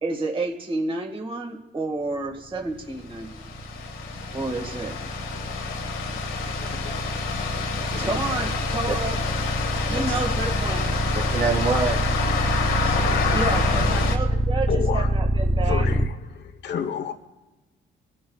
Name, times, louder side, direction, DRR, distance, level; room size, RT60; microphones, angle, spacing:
voice 1, 0.0-3.5 4.3-5.0 8.0-9.2 9.9-10.9 13.3-15.9, right 3 dB, 25° right, 1 dB, 1.8 m, -30 dB
sound 1, 2.8-16.1, right 1 dB, 5° left, 0.5 m, -25 dB
sound 2, 3.3-14.2, left 5 dB, 80° left, 1.4 m, -28 dB
voice 2, 7.9-8.2 8.9-9.0 9.9-10.2 11.3-12.0 12.7-13.3, right 4 dB, 85° right, -3 dB, 3.1 m, -28 dB
voice 3, 14.7-15.1 15.7-17.1, left 7 dB, 60° left, 7 dB, 1.0 m, -30 dB
24.5 x 11.5 x 2.4 m, 1.1 s
cardioid pair, 90°, 20 cm